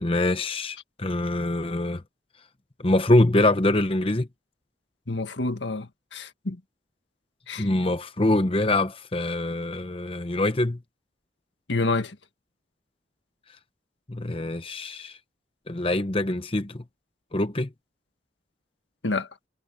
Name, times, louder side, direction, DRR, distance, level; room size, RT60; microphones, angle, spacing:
voice 1, 0.0-2.0 2.8-4.3 7.6-10.8 14.1-15.2 15.7-16.8 17.3-17.7, left 1 dB, 30° left, 0.9 m, -24 dB
voice 2, 5.1-6.6 7.5-7.7 11.7-12.2 19.0-19.3, left 3 dB, 85° left, 1.7 m, -28 dB
head